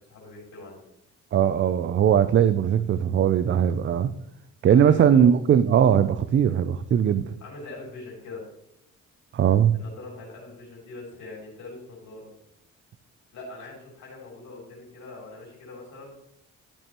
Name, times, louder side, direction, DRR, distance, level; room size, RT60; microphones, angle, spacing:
voice 1, 0.1-0.8 4.6-5.3 7.4-8.4 9.7-12.3 13.3-16.1, left 2 dB, 70° left, -2 dB, 3.2 m, -42 dB
voice 2, 1.3-4.1 4.6-7.3 9.3-9.8, right 9 dB, 40° right, 13 dB, 0.4 m, -20 dB
12.0 x 6.5 x 3.0 m, 0.78 s
cardioid pair, 90°, 30 cm